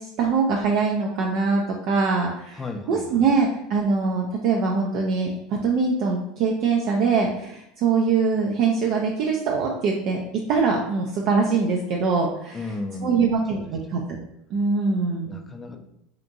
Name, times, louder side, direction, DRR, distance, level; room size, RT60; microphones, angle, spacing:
voice 1, 0.0-2.6 2.9-10.2 10.5-12.6 13.0-14.0 14.5-15.4, right 4 dB, 55° right, 0 dB, 0.3 m, -23 dB
voice 2, 2.5-3.3 12.5-13.7 15.3-15.8, left 2 dB, 20° left, 5 dB, 0.4 m, -35 dB
2.9 x 2.5 x 2.4 m, 0.78 s
hypercardioid pair, 85°, 0 cm